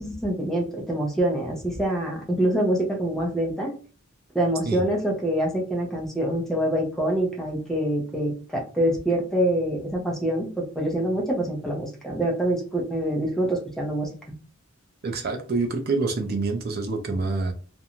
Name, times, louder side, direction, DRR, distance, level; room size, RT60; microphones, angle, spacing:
voice 1, 0.0-3.7 4.3-14.4, right 1 dB, ahead, 0 dB, 0.6 m, -25 dB
voice 2, 15.0-17.5, right 3 dB, 50° right, 5 dB, 0.5 m, -26 dB
2.5 x 2.2 x 2.9 m, 0.39 s
head